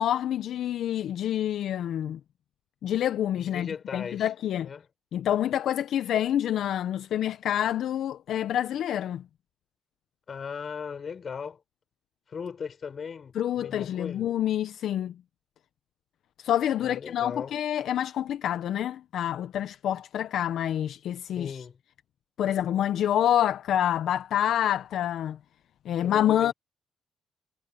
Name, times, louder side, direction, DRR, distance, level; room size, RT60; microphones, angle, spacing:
voice 1, 0.0-2.2 2.8-4.7 5.1-9.2 13.3-15.1 16.4-21.6 22.4-25.4 25.9-26.5, left 11 dB, 70° left, 0.6 m, -27 dB
voice 2, 3.4-4.3 4.6-4.9 10.3-11.6 12.3-14.3 16.8-17.6 21.4-21.8 26.0-26.5, left 6 dB, 45° left, 5.7 m, -38 dB
cardioid pair, 90°, 0 cm